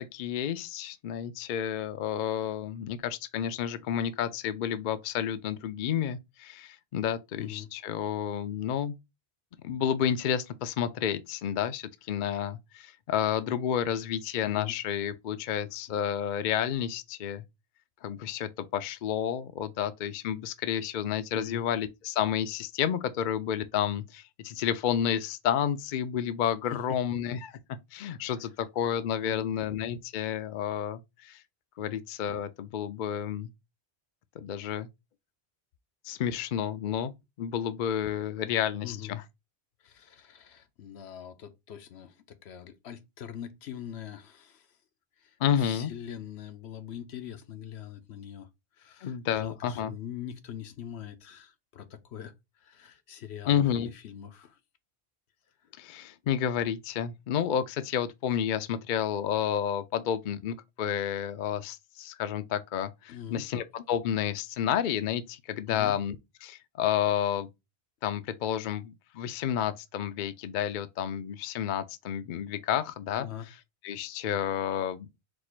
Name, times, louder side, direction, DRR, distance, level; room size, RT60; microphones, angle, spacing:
voice 1, 0.0-9.0 9.6-17.4 18.0-27.5 27.9-31.4 31.8-33.5 34.4-34.9 36.0-39.2 45.4-45.9 49.0-49.9 53.4-53.9 55.8-66.2 66.4-67.5 68.0-73.3 73.8-75.1, left 9 dB, 55° left, 0.6 m, -30 dB
voice 2, 7.4-7.7 14.4-14.7 21.3-21.6 26.7-27.0 28.2-28.4 29.2-29.6 38.8-39.2 39.8-44.7 45.2-48.5 48.8-54.6 63.1-63.4 65.7-66.0 73.2-73.5, left 9 dB, 75° left, 1.0 m, -43 dB
4.4 x 2.5 x 4.4 m
omnidirectional pair, 1.1 m